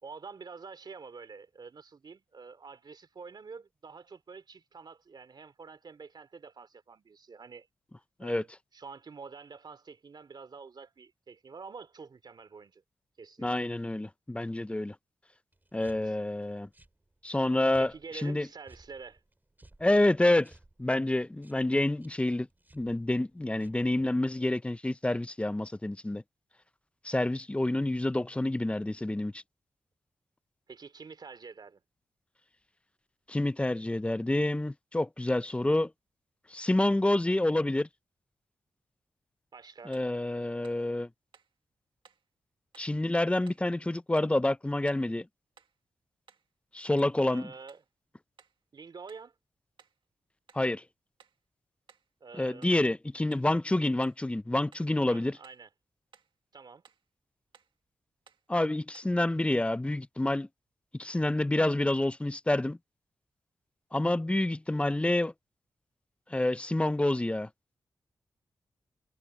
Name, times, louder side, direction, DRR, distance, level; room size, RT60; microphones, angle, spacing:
voice 1, 0.0-7.7 8.2-12.8 13.2-13.5 16.0-16.1 17.8-19.2 30.7-31.8 39.5-40.0 47.3-47.8 48.7-49.3 52.2-52.7 55.1-55.7 56.5-56.8, right 5 dB, 60° right, 2.9 m, -47 dB
voice 2, 13.4-15.0 15.7-16.7 17.2-18.5 19.8-20.5 20.8-22.5 22.7-26.2 27.0-29.4 33.3-35.9 36.5-37.9 39.9-41.1 42.8-45.3 46.7-47.5 50.5-50.8 52.4-55.4 58.5-60.5 60.9-62.8 63.9-65.3 66.3-67.5, left 1 dB, 15° left, 0.5 m, -28 dB
sound 1, 15.5-24.4, right 2 dB, 20° right, 3.7 m, -61 dB
sound 2, 39.9-40.2 40.6-40.9 41.3-41.6 42.0-42.3 42.7-43.0 43.5-43.7 44.2-44.4 44.9-45.1 45.6-45.8 46.3-46.5 47.0-47.2 47.7-47.9 48.4-48.6 49.1-49.3 49.8-50.0 50.5-50.7 51.2-51.4 51.9-52.1 52.6-52.8 53.3-53.5 54.0-54.3 54.7-54.9 55.4-55.7 56.1-56.4 56.8-57.1 57.5-57.8 58.3-58.5 58.9-59.2, right 6 dB, 75° right, 1.7 m, -61 dB
cardioid pair, 65°, 8 cm